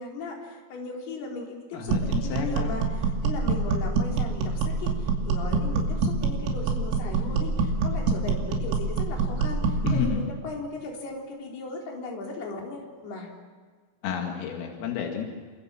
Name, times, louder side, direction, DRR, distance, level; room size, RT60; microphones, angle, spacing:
voice 1, 0.0-13.3, left 3 dB, 55° left, -1 dB, 5.7 m, -37 dB
voice 2, 1.7-2.7 9.8-10.3 14.0-15.2, left 6 dB, 85° left, 1 dB, 4.9 m, -30 dB
sound 1, 1.9-10.1, right 4 dB, 90° right, 5.3 m, -26 dB
28.5 x 25.0 x 7.6 m, 1.5 s
omnidirectional pair, 5.8 m